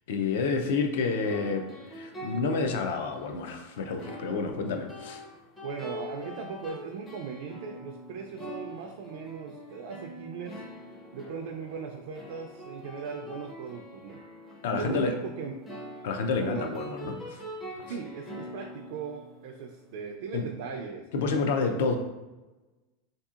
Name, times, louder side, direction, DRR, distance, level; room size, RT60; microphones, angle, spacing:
voice 1, 0.1-5.2 14.6-15.1 16.0-17.4 20.3-20.4 21.1-22.0, left 4 dB, 65° left, 5 dB, 0.4 m, -29 dB
sound 1, 0.9-19.9, equal, 10° left, 0.4 m, -44 dB
voice 2, 5.6-10.6 11.1-14.2 14.7-15.5 16.4-16.7 17.9-21.9, right 5 dB, 55° right, 1 dB, 0.3 m, -38 dB
3.6 x 2.7 x 2.4 m, 1.1 s
supercardioid pair, 180°, 0 cm